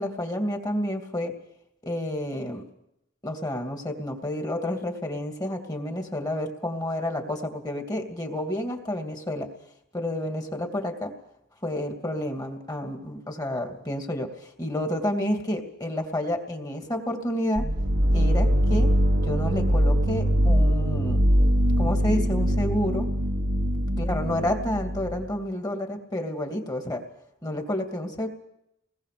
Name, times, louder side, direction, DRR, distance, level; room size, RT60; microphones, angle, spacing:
voice 1, 0.0-1.3 1.8-2.6 3.2-9.5 9.9-11.1 11.6-17.7 18.1-18.9 19.2-21.2 21.8-23.1 24.0-27.0 27.4-28.3, left 1 dB, 20° left, 4 dB, 2.7 m, -30 dB
sound 1, 17.6-25.3, equal, 60° right, 1.4 m, -22 dB
26.0 x 20.0 x 6.9 m, 0.83 s
head